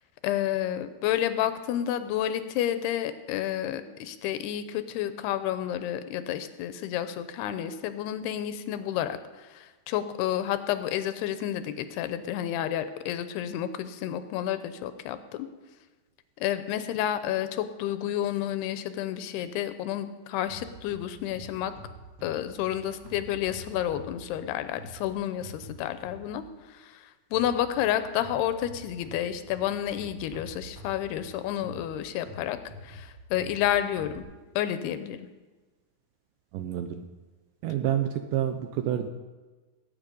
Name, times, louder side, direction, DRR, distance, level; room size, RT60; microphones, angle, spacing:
voice 1, 0.2-15.5 16.4-21.7 22.2-32.6 32.8-34.2 34.6-35.3, left 11 dB, 90° left, 11 dB, 2.9 m, -30 dB
sound 1, 20.5-26.5 27.3-34.2, right 1 dB, 40° right, 2.2 m, -47 dB
voice 2, 36.5-37.1 37.6-39.1, right 10 dB, 80° right, 7 dB, 2.1 m, -28 dB
20.0 x 8.9 x 5.3 m, 1.3 s
omnidirectional pair, 4.5 m